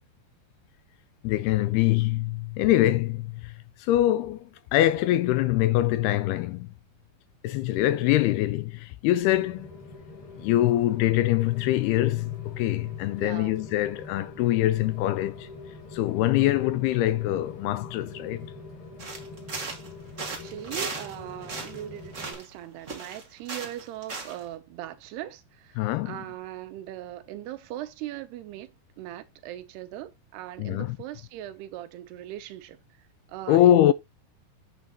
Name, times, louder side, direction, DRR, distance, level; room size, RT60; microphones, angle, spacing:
voice 1, 1.2-3.5 3.8-6.7 7.4-9.7 10.4-15.5 15.9-18.5 25.8-26.2 30.6-31.0 33.5-33.9, left 14 dB, 80° left, 2.5 m, -24 dB
voice 2, 7.7-8.2 13.2-13.6 16.4-16.6 20.3-33.9, right 13 dB, 80° right, 2.8 m, -40 dB
Rain, 9.2-22.3, left 3 dB, 55° left, 4.1 m, -44 dB
sound 1, 19.0-19.9 20.2-21.2 21.4-22.6 22.9-24.4, right 4 dB, 50° right, 0.8 m, -36 dB
8.9 x 8.2 x 3.0 m
omnidirectional pair, 4.8 m